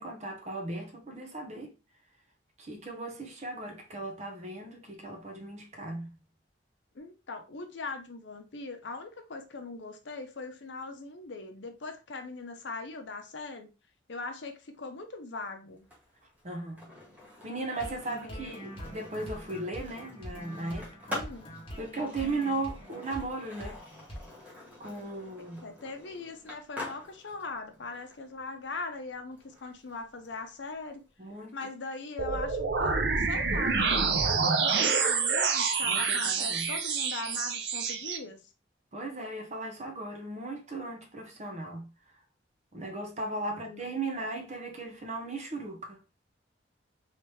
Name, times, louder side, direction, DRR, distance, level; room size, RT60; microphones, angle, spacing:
voice 1, 0.0-1.7 2.6-6.2 16.4-16.9 17.4-21.2 21.8-23.8 24.8-25.6 31.2-31.6 35.8-36.7 38.9-41.9 42.7-46.0, right 2 dB, 35° right, 0.8 m, -37 dB
voice 2, 6.9-13.7 14.1-15.8 18.2-18.6 21.1-21.5 25.4-31.0 31.5-33.9 34.2-38.5 43.5-44.0, left 3 dB, 75° left, 0.7 m, -41 dB
Skateboard, 15.8-31.6, left 1 dB, 10° right, 1.0 m, -47 dB
sound 1, 17.8-23.3 23.6-23.8 24.1-24.2, equal, 30° left, 1.0 m, -43 dB
sound 2, 32.2-38.2, right 5 dB, 70° right, 0.5 m, -27 dB
3.2 x 2.9 x 3.2 m
head